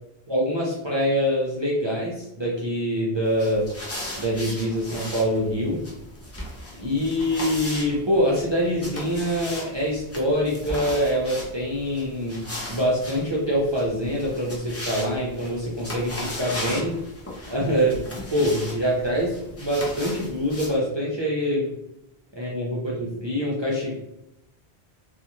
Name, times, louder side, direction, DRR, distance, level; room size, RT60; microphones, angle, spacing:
voice 1, 0.3-3.7 4.2-5.8 6.8-17.0 17.5-21.7 22.4-24.0, equal, 40° right, -5 dB, 0.4 m, -25 dB
sound 1, 3.2-20.8, left 1 dB, 20° left, 0.4 m, -37 dB
2.5 x 2.4 x 2.9 m, 0.84 s
omnidirectional pair, 1.1 m